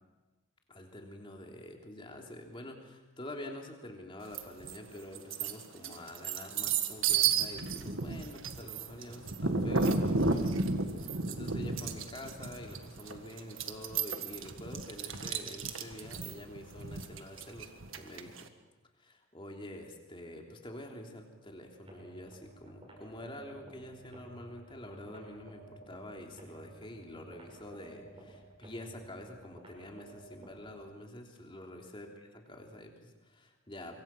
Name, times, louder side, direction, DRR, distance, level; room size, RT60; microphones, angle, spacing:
voice 1, 0.7-18.5 19.0-34.0, left 1 dB, 25° left, 1 dB, 3.3 m, -47 dB
sound 1, 4.3-4.8 5.2-18.4, right 4 dB, 65° right, 1.7 m, -32 dB
sound 2, 21.8-30.8, right 2 dB, 25° right, 6.8 m, -54 dB
25.5 x 23.5 x 6.0 m, 1.1 s
head